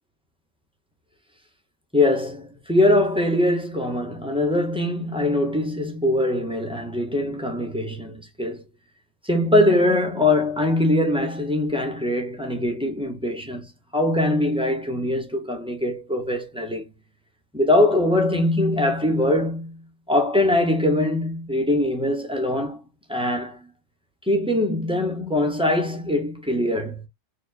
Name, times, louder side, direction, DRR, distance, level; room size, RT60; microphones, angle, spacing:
voice 1, 1.9-8.6 9.2-16.9 17.5-22.8 23.1-23.7 24.3-27.0, left 1 dB, 5° right, 0.7 m, -22 dB
4.2 x 2.7 x 2.5 m
omnidirectional pair, 1.3 m